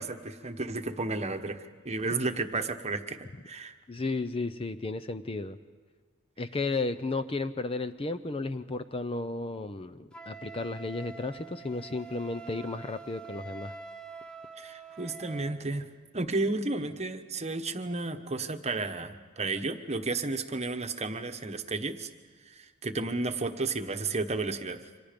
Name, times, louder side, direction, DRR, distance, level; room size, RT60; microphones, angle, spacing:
voice 1, 0.0-3.7 14.6-15.9 16.1-22.1 22.8-24.8, right 3 dB, 30° right, 7 dB, 1.1 m, -32 dB
voice 2, 3.9-5.6 6.4-13.7, left 3 dB, 25° left, 11 dB, 0.6 m, -33 dB
Wind instrument woodwind instrument, 10.1-15.6, right 4 dB, 5° left, 1.1 m, -45 dB
28.5 x 25.5 x 5.2 m, 1.5 s
head